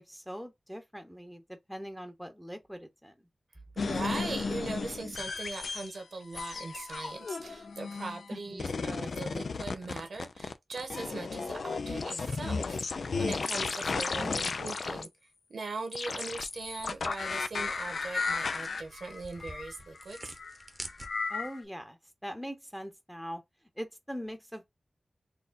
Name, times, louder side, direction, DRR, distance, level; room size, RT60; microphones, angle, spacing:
voice 1, 0.0-1.4 1.7-3.1 8.3-8.9 14.2-14.6 21.3-23.4 23.8-24.7, equal, ahead, 0.9 m, -42 dB
voice 2, 3.7-15.1 15.5-20.3, right 3 dB, 85° right, 1.2 m, -40 dB
sound 1, 3.8-6.0 6.3-8.3 8.6-15.1 15.9-21.6, left 4 dB, 80° left, 0.4 m, -34 dB
sound 2, 16.3-21.5, right 2 dB, 30° right, 0.8 m, -49 dB
4.2 x 2.7 x 2.6 m
wide cardioid pair, 75°, 0 cm